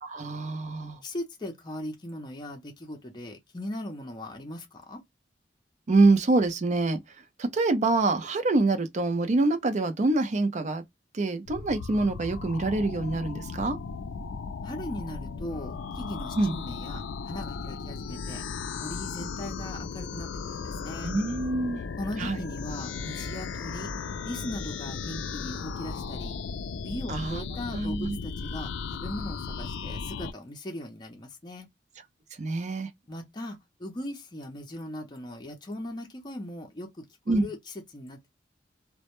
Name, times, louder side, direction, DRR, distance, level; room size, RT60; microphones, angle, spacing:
voice 1, 0.0-1.0 5.9-7.0 7.4-10.8 11.1-13.8 16.4-16.6 21.0-21.8 22.2-22.4 27.1-27.4 27.7-28.2 32.4-32.9 37.3-37.4, right 2 dB, 40° right, 0.4 m, -25 dB
voice 2, 1.0-5.0 14.6-18.4 18.8-21.1 22.0-23.9 24.2-26.4 26.8-31.7 33.1-38.2, left 1 dB, 25° left, 0.5 m, -39 dB
sound 1, 11.5-30.3, left 5 dB, 90° left, 0.3 m, -36 dB
2.1 x 2.0 x 2.9 m
head